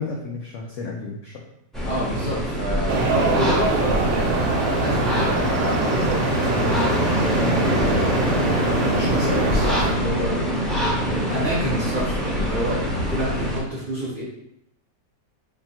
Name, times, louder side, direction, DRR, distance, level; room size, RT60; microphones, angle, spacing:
voice 1, 0.0-1.3, left 4 dB, 80° left, -1 dB, 0.7 m, -32 dB
sound 1, 1.7-13.6, equal, ahead, 0.6 m, -24 dB
voice 2, 1.8-7.0 7.6-10.4 10.9-14.2, right 1 dB, 45° right, -7 dB, 0.7 m, -28 dB
sound 2, 2.9-9.9, right 3 dB, 85° right, 1.3 m, -25 dB
3.4 x 2.4 x 4.2 m, 0.78 s
omnidirectional pair, 1.9 m